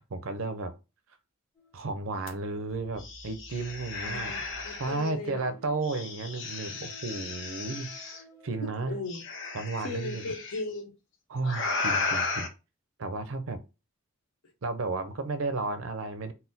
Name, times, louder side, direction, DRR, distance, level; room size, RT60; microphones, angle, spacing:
voice 1, 0.1-0.7 1.7-4.3 4.8-8.9 9.5-10.3 11.3-12.5 13.0-13.6 14.6-16.3, right 3 dB, 65° right, 0.5 m, -33 dB
sound 1, 1.5-2.5 4.5-9.6 10.4-10.6 11.4-11.5, right 3 dB, 10° left, 0.8 m, -55 dB
sound 2, 2.3-2.4 2.7-5.1 5.8-8.2 9.1-10.6 11.4-12.5, left 3 dB, 55° left, 0.8 m, -35 dB
voice 2, 4.0-5.5 8.6-9.2 9.8-10.9, left 2 dB, 90° left, 1.1 m, -37 dB
4.1 x 2.1 x 3.9 m
head